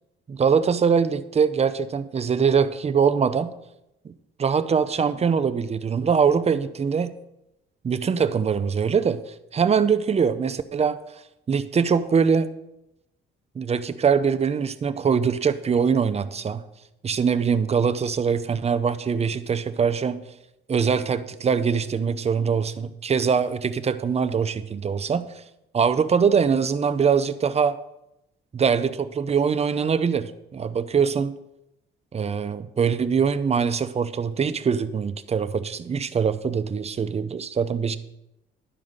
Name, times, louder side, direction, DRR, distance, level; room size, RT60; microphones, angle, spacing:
voice 1, 0.3-3.5 4.0-4.1 4.4-7.1 7.8-9.2 9.5-11.0 11.5-12.5 13.6-16.6 17.0-20.2 20.7-25.3 25.7-27.8 28.5-31.4 32.1-38.0, right 6 dB, 30° right, 12 dB, 0.6 m, -23 dB
11.5 x 4.9 x 6.5 m, 0.88 s
cardioid pair, 90°, 20 cm